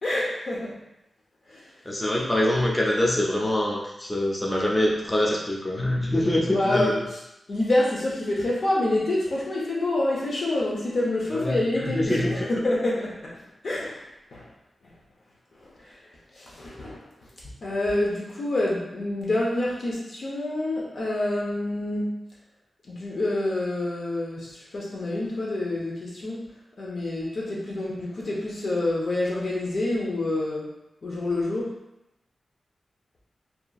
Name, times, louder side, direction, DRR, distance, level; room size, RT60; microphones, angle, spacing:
voice 1, 0.0-0.8 1.5-1.7 6.5-7.0 7.5-14.0 14.3-14.5 15.6-16.0 16.3-17.0 17.6-22.1 22.8-26.5 26.8-30.7 31.0-31.7, left 1 dB, 65° left, -5 dB, 0.6 m, -27 dB
voice 2, 1.9-7.0 11.3-12.5, left 1 dB, 15° left, -2 dB, 0.4 m, -24 dB
2.8 x 2.4 x 2.3 m, 0.88 s
wide cardioid pair, 105°, 0 cm